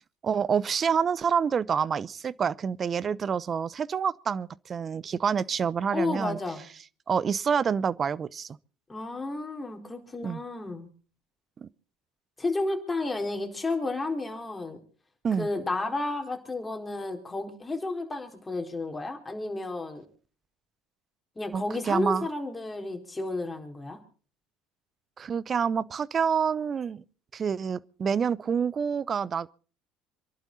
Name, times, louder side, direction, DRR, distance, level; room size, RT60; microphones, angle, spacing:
voice 1, 0.2-6.4 7.1-8.6 10.2-10.4 11.6-11.7 15.2-15.5 21.5-22.3 25.2-27.0 27.3-29.5, right 6 dB, 35° right, 0.7 m, -27 dB
voice 2, 5.9-6.6 8.9-10.9 12.4-14.8 15.4-20.0 21.4-24.0, left 2 dB, 20° left, 4.5 m, -32 dB
27.0 x 11.5 x 4.1 m
hypercardioid pair, 70°, 0 cm